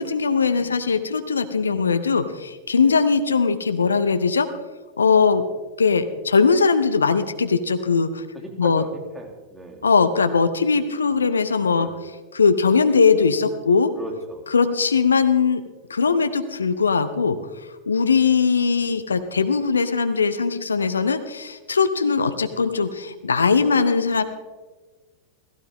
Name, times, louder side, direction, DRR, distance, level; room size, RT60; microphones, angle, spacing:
voice 1, 0.0-4.5 5.0-5.5 5.8-8.2 8.6-8.8 9.8-11.9 12.3-13.9 14.5-15.6 15.9-17.4 17.9-24.2, left 5 dB, 75° left, 10 dB, 0.7 m, -20 dB
voice 2, 0.5-0.9 1.5-1.8 2.8-2.9 8.3-9.9 11.7-11.9 13.9-14.4, right 2 dB, 10° right, 0 dB, 2.9 m, -38 dB
16.5 x 15.0 x 3.7 m, 1.3 s
figure-of-eight pair, 90°, 0 cm